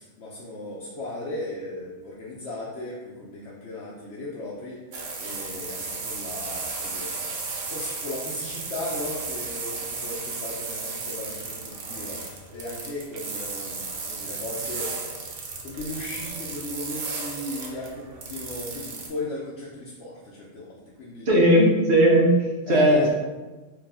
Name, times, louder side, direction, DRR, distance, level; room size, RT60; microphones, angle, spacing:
voice 1, 0.0-4.8 5.2-7.1 7.7-14.9 15.6-21.4 22.7-23.1, left 1 dB, 70° left, -5 dB, 1.1 m, -36 dB
sound 1, 4.9-19.1, right 4 dB, 80° right, 1.1 m, -34 dB
voice 2, 21.3-23.1, right 1 dB, 60° right, -2 dB, 1.2 m, -18 dB
4.7 x 3.0 x 3.6 m, 1.2 s
omnidirectional pair, 1.3 m